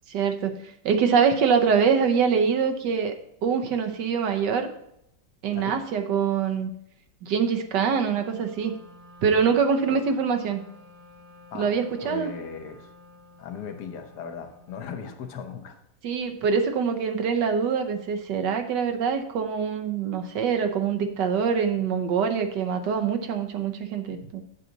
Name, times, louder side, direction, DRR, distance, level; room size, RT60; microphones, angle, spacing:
voice 1, 0.1-0.5 0.8-3.1 3.4-4.7 5.4-6.7 7.2-8.7 9.2-10.6 11.5-12.3 16.0-24.4, right 6 dB, 90° right, 6 dB, 1.5 m, -24 dB
Wind instrument woodwind instrument, 8.0-15.8, left 2 dB, 75° right, 1.9 m, -52 dB
voice 2, 12.0-12.9 13.4-15.8, left 7 dB, 75° left, 6 dB, 1.5 m, -37 dB
7.7 x 7.4 x 4.0 m, 0.77 s
omnidirectional pair, 1.8 m